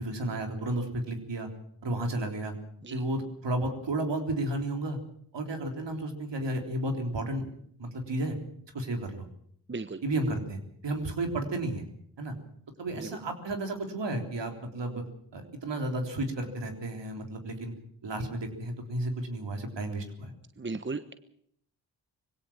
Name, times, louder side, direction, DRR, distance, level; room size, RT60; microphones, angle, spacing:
voice 1, 0.0-1.5 1.8-2.5 2.9-5.0 5.3-7.4 7.8-8.4 8.7-9.3 10.0-11.8 12.2-12.3 12.8-15.0 15.3-17.7 18.0-20.3, right 1 dB, 65° right, 4 dB, 3.7 m, -32 dB
voice 2, 9.7-10.0 13.0-13.1 20.6-21.1, right 3 dB, 25° right, 11 dB, 1.2 m, -35 dB
20.5 x 17.0 x 7.4 m, 0.67 s
cardioid pair, 45°, 46 cm